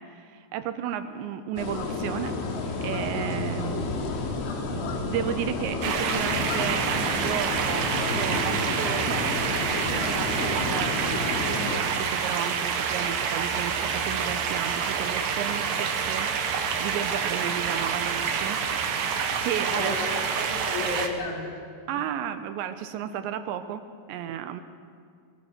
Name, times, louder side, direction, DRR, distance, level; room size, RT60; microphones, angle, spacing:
voice 1, 0.0-3.9 4.3-4.4 4.6-9.3 9.7-18.6 19.4-20.0 21.9-24.6, right 9 dB, 80° right, 9 dB, 2.9 m, -33 dB
sound 1, 1.6-11.8, left 3 dB, 90° left, 4.5 m, -31 dB
sound 2, 5.8-21.1, right 6 dB, 65° right, 2.6 m, -27 dB
voice 2, 19.6-21.6, left 3 dB, 40° left, -1 dB, 4.2 m, -33 dB
22.5 x 20.0 x 6.5 m, 2.2 s
omnidirectional pair, 5.4 m